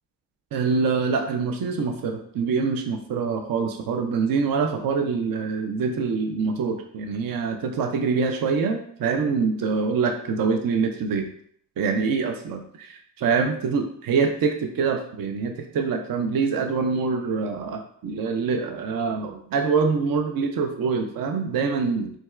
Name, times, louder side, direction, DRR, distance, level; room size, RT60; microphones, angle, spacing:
voice 1, 0.5-11.3 11.8-22.1, right 5 dB, 55° right, 5 dB, 0.5 m, -25 dB
3.9 x 2.3 x 2.3 m, 0.63 s
supercardioid pair, 50°, 44 cm